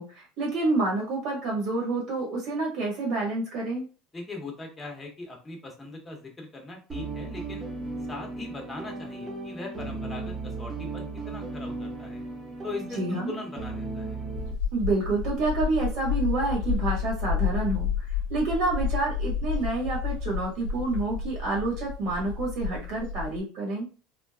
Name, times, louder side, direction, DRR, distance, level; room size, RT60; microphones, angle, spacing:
voice 1, 0.0-3.8 12.9-13.3 14.7-18.0 18.3-23.9, right 2 dB, 70° right, -3 dB, 1.5 m, -28 dB
voice 2, 4.1-7.6 8.1-12.2 12.6-14.2, left 3 dB, 20° left, 1 dB, 1.2 m, -40 dB
sound 1, 6.9-14.5, right 3 dB, 30° right, 0.9 m, -36 dB
sound 2, 14.3-23.4, left 6 dB, 80° left, 0.9 m, -30 dB
3.8 x 2.2 x 2.4 m, 0.35 s
supercardioid pair, 90°, 0 cm